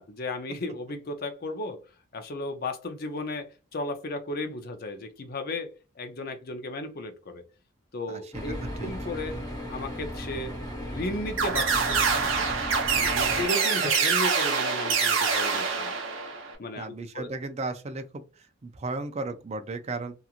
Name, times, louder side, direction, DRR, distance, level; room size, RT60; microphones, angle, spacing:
voice 1, 0.0-1.8 2.1-5.7 6.0-7.4 7.9-9.4 9.7-12.3 12.9-15.9 16.6-17.3, left 2 dB, 50° left, 0.6 m, -35 dB
voice 2, 8.1-8.9 13.8-13.9 16.8-18.2 18.6-20.1, right 3 dB, 30° right, 0.4 m, -35 dB
sound 1, 8.3-13.5, equal, 20° left, 1.1 m, -36 dB
sound 2, 11.4-16.5, right 5 dB, 70° right, 0.8 m, -25 dB
2.9 x 2.5 x 2.4 m
head